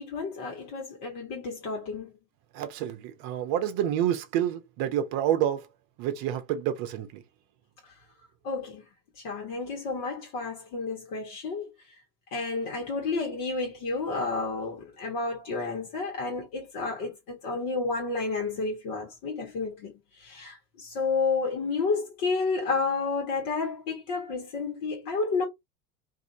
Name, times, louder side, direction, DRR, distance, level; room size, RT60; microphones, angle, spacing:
voice 1, 0.0-2.1 8.4-8.8 9.1-11.7 12.3-25.4, left 4 dB, 50° left, 1.4 m, -31 dB
voice 2, 2.5-5.7 6.0-7.2, right 10 dB, 45° right, 0.8 m, -28 dB
2.7 x 2.5 x 2.7 m
hypercardioid pair, 85°, 49 cm